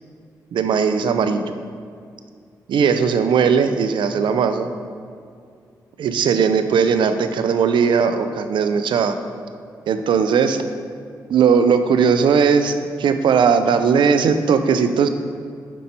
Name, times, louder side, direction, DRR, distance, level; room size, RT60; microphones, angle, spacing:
voice 1, 0.5-1.4 2.7-4.7 6.0-9.2 9.9-10.6 11.3-15.1, right 6 dB, 75° right, 9 dB, 0.4 m, -18 dB
5.3 x 5.3 x 4.3 m, 2.3 s
supercardioid pair, 50°, 8 cm